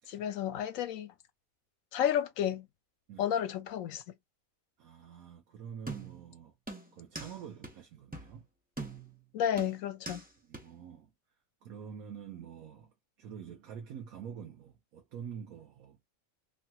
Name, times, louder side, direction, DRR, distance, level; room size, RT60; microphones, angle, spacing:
voice 1, 0.1-1.1 1.9-2.7 3.2-4.0 9.3-10.2, left 10 dB, 80° left, 1.0 m, -31 dB
voice 2, 4.8-6.6 6.9-8.5 10.4-11.1 11.6-16.0, right 7 dB, 90° right, 1.2 m, -46 dB
sound 1, 5.9-6.3 6.7-7.3 7.6-7.7 8.1-8.3 8.8-9.2 9.6-10.2 10.5-10.6, right 2 dB, 10° right, 0.4 m, -42 dB
3.2 x 2.7 x 2.2 m
omnidirectional pair, 1.4 m